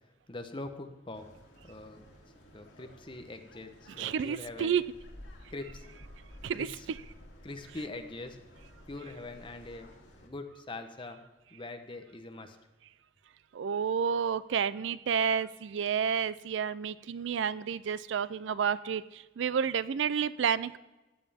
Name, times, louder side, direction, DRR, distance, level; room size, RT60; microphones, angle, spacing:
voice 1, 0.3-1.3 1.6-2.1 2.5-4.7 5.5-5.9 6.5-6.9 7.4-8.4 8.9-9.9 10.2-11.2 11.5-12.6, left 2 dB, 25° left, 6 dB, 0.9 m, -43 dB
sound 1, 1.1-10.3, left 1 dB, 90° left, 2.2 m, -53 dB
voice 2, 4.0-4.8 6.4-6.7 13.5-20.8, right 7 dB, 75° right, 17 dB, 0.4 m, -30 dB
14.0 x 9.2 x 3.5 m, 1.1 s
head